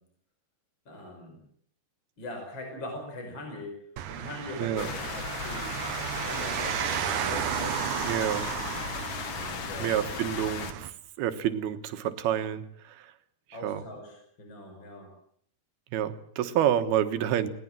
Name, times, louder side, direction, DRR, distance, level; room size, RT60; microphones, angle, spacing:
voice 1, 0.9-1.4 2.2-3.7 4.1-5.7 6.2-8.7 9.3-10.0 13.5-15.1, left 1 dB, 30° left, 3 dB, 5.8 m, -41 dB
sound 1, 4.0-10.9, right 11 dB, 65° right, 2.1 m, -34 dB
sound 2, 4.8-10.7, left 7 dB, 55° left, 1.7 m, -36 dB
voice 2, 8.1-8.5 9.8-13.1 13.6-13.8 15.9-17.5, right 10 dB, 90° right, 10 dB, 3.3 m, -28 dB
21.0 x 19.0 x 7.4 m, 0.66 s
omnidirectional pair, 4.3 m